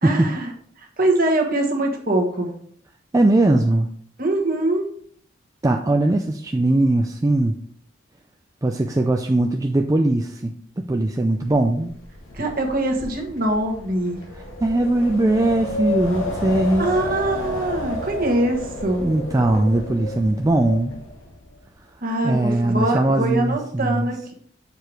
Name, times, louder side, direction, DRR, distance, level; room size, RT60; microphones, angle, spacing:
voice 1, 0.0-0.5 0.8-2.5 4.2-4.9 12.3-14.2 16.8-19.1 22.0-24.3, right 1 dB, 45° right, 2 dB, 1.3 m, -23 dB
voice 2, 3.1-3.9 5.6-7.5 8.6-12.0 14.6-16.9 19.0-21.0 22.2-24.0, right 2 dB, 15° right, 3 dB, 0.3 m, -20 dB
Wind, 11.5-21.6, left 2 dB, 80° left, 1.9 m, -31 dB
6.8 x 4.6 x 4.7 m, 0.62 s
head